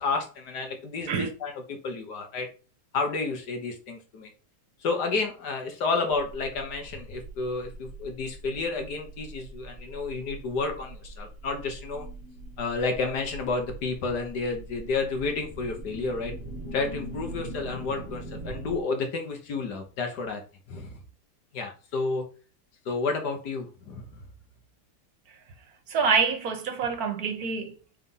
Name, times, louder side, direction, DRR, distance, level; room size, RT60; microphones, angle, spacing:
voice 1, 0.0-2.5 2.9-4.3 4.8-12.1 12.6-16.3 16.7-20.4 20.7-21.0 21.5-22.2 22.9-24.1, left 4 dB, 75° left, 1.9 m, -31 dB
sound 1, 6.1-18.8, right 1 dB, 25° right, 1.4 m, -42 dB
voice 2, 25.9-27.7, right 5 dB, 65° right, 1.4 m, -26 dB
4.4 x 4.1 x 5.4 m
omnidirectional pair, 1.8 m